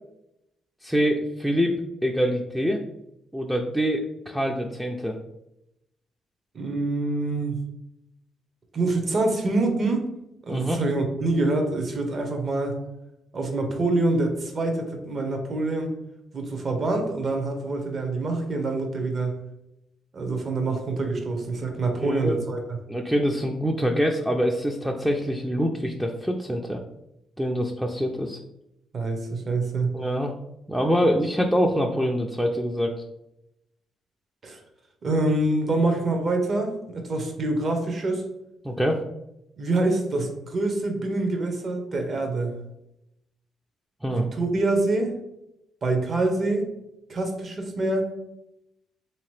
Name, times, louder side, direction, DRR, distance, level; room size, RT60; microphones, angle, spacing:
voice 1, 0.8-2.8 3.3-5.2 10.5-10.8 22.0-22.4 22.9-26.8 27.4-28.4 29.9-30.3 30.7-32.9 38.6-39.0 44.0-44.3, equal, 5° right, 1 dB, 0.3 m, -25 dB
voice 2, 6.5-7.6 8.7-10.0 10.5-12.8 13.3-15.9 16.3-19.3 20.1-22.8 28.9-30.0 34.4-34.6 35.0-38.2 39.6-42.5 44.1-45.1 45.8-46.6 47.1-48.1, right 2 dB, 45° right, 4 dB, 0.8 m, -25 dB
3.6 x 2.8 x 3.1 m, 0.85 s
cardioid pair, 90°, 0 cm